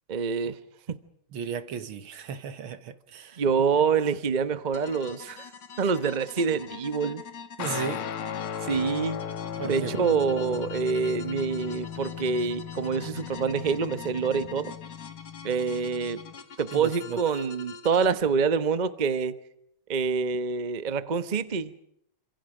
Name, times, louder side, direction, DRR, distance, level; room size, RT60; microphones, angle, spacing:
voice 1, 0.1-0.6 0.9-1.0 3.4-5.5 5.8-7.2 8.6-9.2 9.6-14.7 15.4-16.2 16.6-19.4 19.9-21.7, right 5 dB, 30° right, 0.9 m, -26 dB
voice 2, 1.3-3.4 7.6-8.1 9.6-10.0 16.7-17.2, right 7 dB, 70° right, 2.2 m, -35 dB
sound 1, 4.7-18.1, left 5 dB, 55° left, 2.3 m, -44 dB
Guitar, 7.6-16.4, left 9 dB, 80° left, 2.3 m, -37 dB
28.0 x 26.5 x 5.0 m
omnidirectional pair, 2.4 m